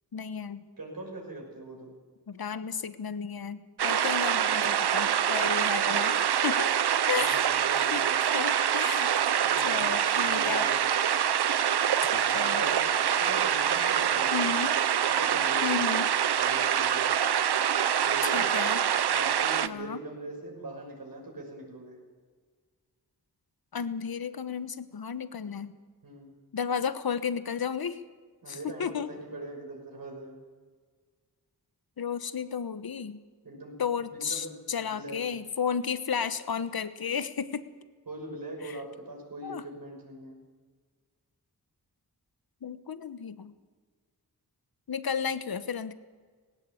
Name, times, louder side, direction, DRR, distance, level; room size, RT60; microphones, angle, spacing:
voice 1, 0.1-0.6 2.3-6.7 7.1-7.5 7.8-9.1 9.6-10.6 12.0-12.6 14.3-14.7 15.6-16.1 18.2-18.8 19.6-20.0 23.7-25.7 26.5-28.0 28.5-29.1 32.0-33.2 33.8-37.6 38.6-38.8 39.4-39.6 42.6-43.5 44.9-45.9, left 6 dB, 70° left, 13 dB, 1.2 m, -33 dB
voice 2, 0.8-1.9 7.2-8.0 9.4-10.9 12.2-12.8 13.2-14.5 15.0-15.8 16.4-17.2 18.0-18.4 19.1-22.0 26.0-26.3 28.4-30.3 33.4-33.8 34.3-34.5 34.8-35.2 38.1-40.4, right 2 dB, 60° right, 0 dB, 6.3 m, -41 dB
sound 1, 3.8-19.7, right 9 dB, 80° right, 0.8 m, -25 dB
18.5 x 17.5 x 8.6 m, 1.6 s
wide cardioid pair, 80°, 39 cm